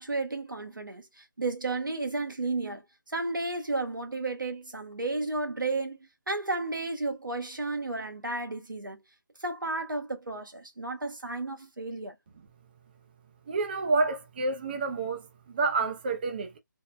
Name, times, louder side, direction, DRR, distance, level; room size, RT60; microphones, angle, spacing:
voice 1, 0.0-2.8 3.1-6.0 6.3-9.0 9.4-12.1, right 2 dB, 90° right, 1.2 m, -33 dB
voice 2, 13.5-16.6, right 3 dB, 30° right, 0.5 m, -29 dB
3.4 x 2.1 x 2.4 m
figure-of-eight pair, 155°, 11 cm